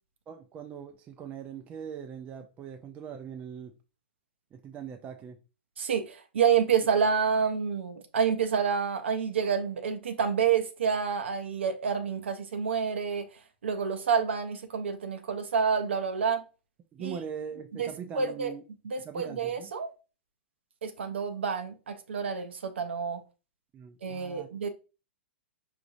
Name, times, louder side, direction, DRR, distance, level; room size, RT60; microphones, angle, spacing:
voice 1, 0.3-3.7 4.5-5.4 16.9-18.6 19.0-19.7 23.7-24.5, right 7 dB, 25° right, 0.4 m, -41 dB
voice 2, 5.8-13.3 13.6-16.4 17.0-17.2 17.8-17.9 18.1-18.5 18.8-19.9 20.8-23.2 24.0-24.7, right 6 dB, 75° right, 0.5 m, -28 dB
4.9 x 2.7 x 2.6 m
hypercardioid pair, 115°, 6 cm